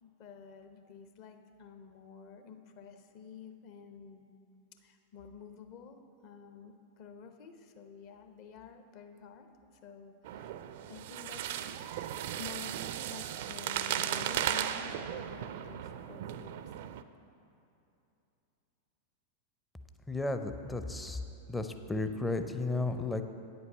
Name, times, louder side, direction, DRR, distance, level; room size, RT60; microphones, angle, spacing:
voice 1, 0.0-4.4 4.8-10.5 10.9-11.5 12.4-16.7, left 6 dB, 45° left, 7 dB, 0.8 m, -50 dB
sound 1, 10.2-17.0, right 11 dB, 55° right, 0.4 m, -36 dB
voice 2, 20.1-21.2 21.5-23.2, left 2 dB, 10° left, 7 dB, 0.5 m, -33 dB
9.4 x 7.9 x 5.4 m, 2.7 s
figure-of-eight pair, 90°, 0 cm